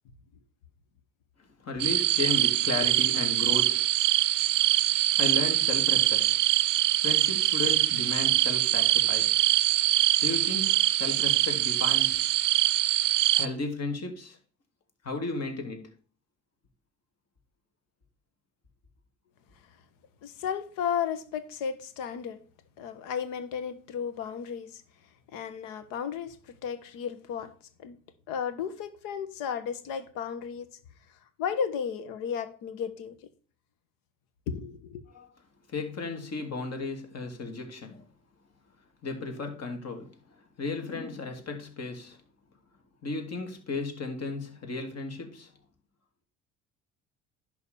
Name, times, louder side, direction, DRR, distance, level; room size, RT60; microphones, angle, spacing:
voice 1, 1.6-3.9 5.0-6.4 6.7-9.4 9.8-12.2 13.4-14.4 15.0-15.9 35.1-35.3 35.7-38.0 39.0-42.2 43.0-45.5, left 3 dB, 45° left, 2.8 m, -35 dB
sound 1, 1.8-13.5, right 14 dB, 85° right, 0.5 m, -24 dB
voice 2, 20.2-22.4 22.8-24.8 25.3-27.5 27.8-28.0 28.3-30.7 31.4-33.2 34.5-35.0, left 7 dB, 65° left, 1.3 m, -34 dB
11.0 x 3.9 x 7.0 m
hypercardioid pair, 60°, 36 cm